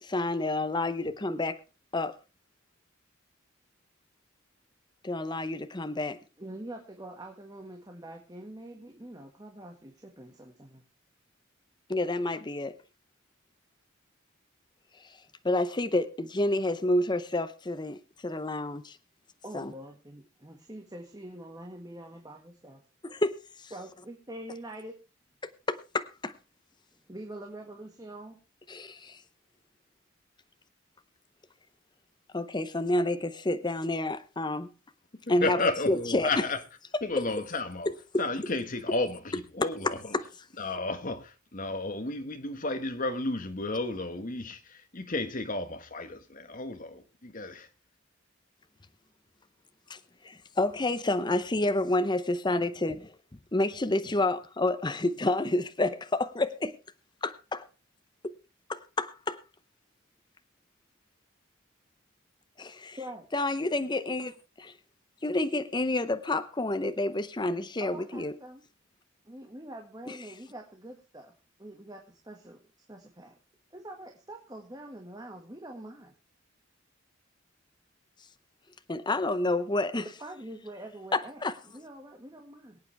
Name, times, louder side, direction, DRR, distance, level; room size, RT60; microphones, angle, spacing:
voice 1, 0.0-1.6 1.9-2.2 5.0-6.2 11.9-12.7 15.4-19.0 19.5-19.7 23.0-23.7 25.7-26.3 28.7-29.2 32.3-34.7 35.3-35.6 35.9-36.4 37.1-37.2 37.9-38.2 39.6-40.2 49.9-50.0 50.2-53.1 53.5-56.7 57.2-57.6 58.2-58.3 58.7-59.4 62.6-63.0 63.3-64.7 65.2-68.4 70.1-70.2 78.9-80.0 81.1-81.5, left 2 dB, 20° left, 0.7 m, -29 dB
voice 2, 6.4-10.8 19.4-22.8 23.7-25.0 27.1-28.4 63.0-63.3 67.8-68.6 69.2-71.3 71.6-72.6 72.9-73.3 73.7-76.1 80.0-82.8, right 1 dB, 20° right, 1.7 m, -45 dB
voice 3, 35.4-36.6 37.0-37.9 38.2-40.0 40.6-47.7, left 2 dB, 40° left, 1.5 m, -32 dB
23.0 x 8.6 x 3.4 m
head